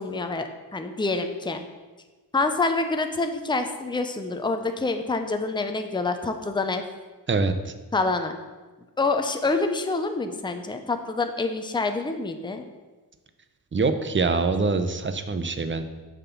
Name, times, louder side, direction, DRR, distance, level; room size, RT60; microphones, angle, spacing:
voice 1, 0.0-1.6 2.3-6.8 7.9-8.4 9.0-12.6, left 3 dB, 10° left, 6 dB, 0.7 m, -27 dB
voice 2, 7.3-7.7 13.7-15.8, right 4 dB, 30° right, 9 dB, 0.7 m, -24 dB
7.3 x 6.0 x 7.0 m, 1.3 s
wide cardioid pair, 130°, 40 cm